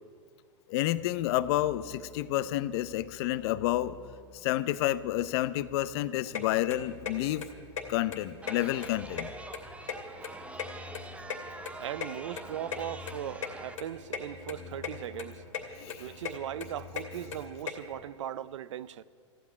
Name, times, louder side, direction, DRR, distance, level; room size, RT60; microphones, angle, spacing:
voice 1, 0.7-4.0 4.3-7.4 7.9-9.3 15.8-16.0, left 15 dB, 55° left, 0.7 m, -30 dB
sound 1, 1.0-18.0, left 2 dB, 10° left, 2.2 m, -52 dB
sound 2, 6.3-6.4 6.7-7.1 7.4-7.5 7.8-7.9 8.1-8.9 9.1-10.3 10.6-12.1 12.4-12.5 12.7-12.8 13.1-13.2 13.4-13.5 13.8-14.2 14.5-14.9 15.2-15.6 15.9-17.7, left 7 dB, 85° left, 2.6 m, -36 dB
Chatter, 8.4-13.7, right 3 dB, 10° right, 0.7 m, -45 dB
voice 2, 11.8-15.4 16.0-19.0, right 11 dB, 75° right, 0.6 m, -39 dB
14.5 x 9.2 x 9.6 m
hypercardioid pair, 110°, 16 cm